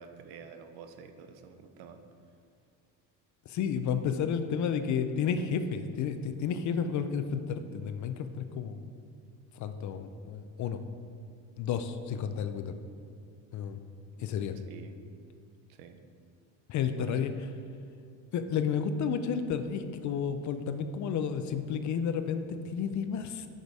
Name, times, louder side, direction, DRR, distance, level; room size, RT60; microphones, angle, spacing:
voice 1, 0.0-2.0 14.1-14.3 14.7-14.9 15.7-16.0 17.0-17.2, right 6 dB, 70° right, 7 dB, 0.8 m, -49 dB
voice 2, 3.5-8.8 9.6-10.8 11.6-12.7 13.5-13.8 14.2-14.5 16.7-17.3 18.3-23.5, left 7 dB, 50° left, 9 dB, 0.5 m, -31 dB
6.5 x 5.2 x 4.7 m, 2.3 s
cardioid pair, 110°, 39 cm